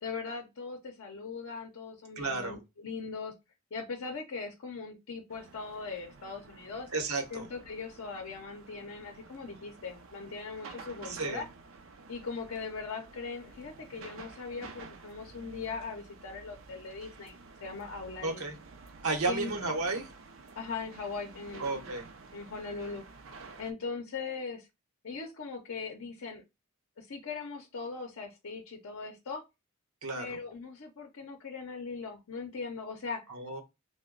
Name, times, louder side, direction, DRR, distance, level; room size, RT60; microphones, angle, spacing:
voice 1, 0.0-3.3 3.7-6.9 7.3-11.5 12.1-18.4 19.3-19.5 20.5-21.9 22.3-23.0 23.6-24.7 25.0-26.4 27.0-29.4 30.2-33.2, left 4 dB, 70° left, 0.6 m, -40 dB
voice 2, 2.2-2.6 6.9-7.5 11.0-11.4 18.2-18.6 19.0-20.1 21.6-22.1 30.0-30.4 33.3-33.6, right 3 dB, 80° right, 0.8 m, -33 dB
sound 1, 5.3-23.7, right 4 dB, 65° right, 0.4 m, -51 dB
2.9 x 2.1 x 3.6 m
head